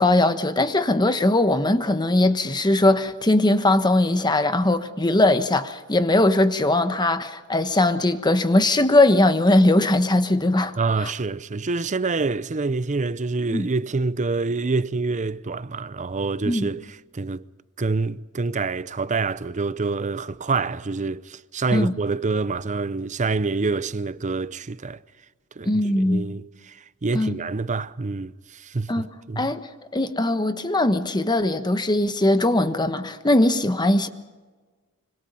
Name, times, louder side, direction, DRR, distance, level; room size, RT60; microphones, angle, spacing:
voice 1, 0.0-10.7 11.0-11.1 13.5-13.7 16.5-16.7 21.7-21.9 25.7-26.2 27.1-27.3 28.9-29.1 29.4-34.1, left 2 dB, 20° left, 1.2 m, -20 dB
voice 2, 10.8-17.5 17.8-25.0 25.6-29.5, right 3 dB, 35° right, 0.6 m, -27 dB
25.5 x 25.0 x 5.4 m
head